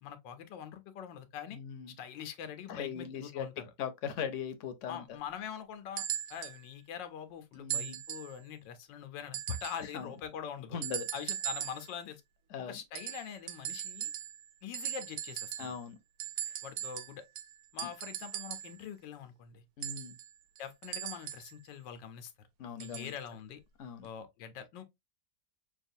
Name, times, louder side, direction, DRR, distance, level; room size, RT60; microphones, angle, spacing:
voice 1, 0.0-1.6 2.0-3.6 4.9-6.0 6.3-10.8 11.1-12.2 12.7-14.1 14.6-15.7 16.6-17.2 17.7-19.6 20.6-22.3 22.8-23.6 24.0-24.8, left 8 dB, 90° left, 1.4 m, -43 dB
voice 2, 1.5-1.9 2.7-3.5 3.8-5.0 7.6-8.0 9.9-10.1 10.7-11.0 12.5-12.8 15.6-16.0 17.8-17.9 19.8-20.2 22.6-23.1 23.8-24.1, left 7 dB, 60° left, 0.8 m, -39 dB
sound 1, 6.0-6.6 7.7-8.4 9.3-9.9 10.8-11.9 12.9-14.5 14.7-15.8 16.2-18.8 19.8-21.5 22.8-23.1 24.0-24.1, right 12 dB, 70° right, 0.9 m, -39 dB
6.0 x 2.4 x 2.6 m
omnidirectional pair, 1.9 m